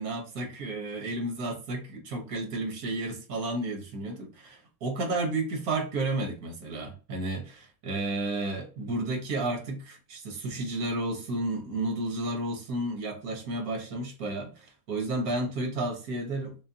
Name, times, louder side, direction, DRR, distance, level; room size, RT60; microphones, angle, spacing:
voice 1, 0.0-16.6, right 2 dB, 90° right, 1.6 m, -32 dB
6.3 x 2.2 x 2.8 m
omnidirectional pair, 1.5 m